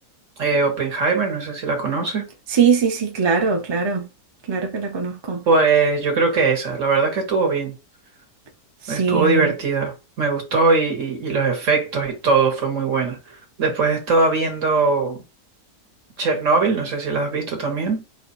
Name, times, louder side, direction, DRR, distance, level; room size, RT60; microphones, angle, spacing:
voice 1, 0.4-2.3 5.5-7.7 8.9-15.2 16.2-18.0, right 4 dB, 55° right, 1.6 m, -21 dB
voice 2, 2.5-4.0 4.5-5.4 8.8-9.5, right 6 dB, 30° right, 0.5 m, -21 dB
4.6 x 2.4 x 4.0 m
omnidirectional pair, 1.6 m